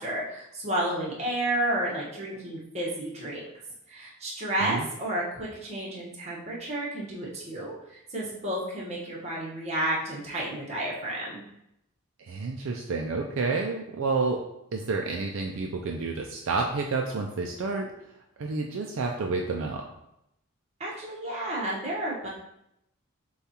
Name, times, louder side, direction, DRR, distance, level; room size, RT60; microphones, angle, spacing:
voice 1, 0.0-3.4 3.9-11.4 20.8-22.3, right 1 dB, 30° right, -5 dB, 1.1 m, -31 dB
voice 2, 12.2-14.4 14.7-17.9 18.4-19.8, right 3 dB, 60° right, 1 dB, 0.4 m, -29 dB
6.8 x 2.4 x 2.8 m, 0.81 s
head